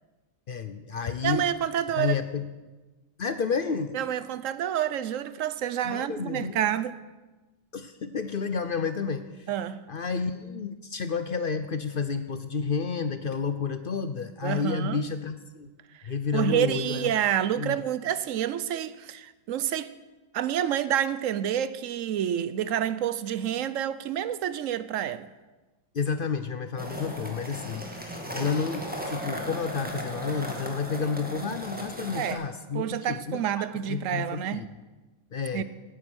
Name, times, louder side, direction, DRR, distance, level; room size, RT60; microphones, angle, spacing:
voice 1, 0.5-1.4 2.0-2.4 3.2-4.0 5.8-6.6 7.7-9.5 9.9-15.7 16.0-17.1 17.6-17.8 25.9-34.7 35.3-35.6, left 5 dB, 50° left, 0.7 m, -31 dB
voice 2, 1.2-2.2 3.9-6.9 9.5-9.9 14.4-15.0 15.9-19.9 20.3-25.3 32.1-32.4 32.7-34.7 35.5-35.6, right 10 dB, 75° right, 1.0 m, -28 dB
sound 1, 26.8-32.3, equal, 5° right, 1.9 m, -36 dB
17.5 x 9.7 x 6.2 m
omnidirectional pair, 1.4 m